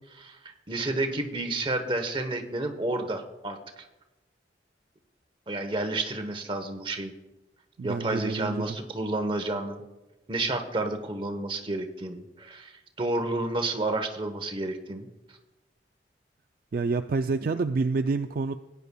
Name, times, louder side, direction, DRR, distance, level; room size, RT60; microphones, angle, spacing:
voice 1, 0.1-3.6 5.5-7.1 7.8-9.8 10.3-12.7 13.0-15.1, right 2 dB, 30° right, 6 dB, 0.9 m, -30 dB
voice 2, 7.8-8.7 16.7-18.5, right 4 dB, 55° right, 8 dB, 0.3 m, -28 dB
17.5 x 9.5 x 2.3 m, 1.0 s
head